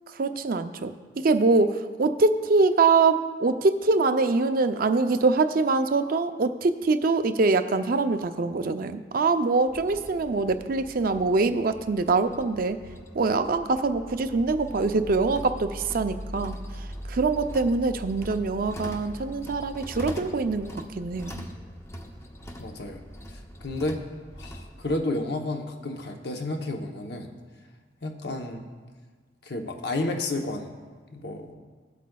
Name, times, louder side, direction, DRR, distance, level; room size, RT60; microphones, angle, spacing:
voice 1, 0.0-12.8 13.1-16.6 17.1-21.3, right 3 dB, 50° right, 9 dB, 0.5 m, -24 dB
sound 1, 9.7-25.0, equal, 15° left, 0.6 m, -41 dB
voice 2, 22.6-23.0 23.6-24.0 24.4-27.3 28.0-28.6 29.4-30.7 31.1-31.5, left 2 dB, 60° left, 4 dB, 0.9 m, -31 dB
16.0 x 8.3 x 2.3 m, 1.5 s
head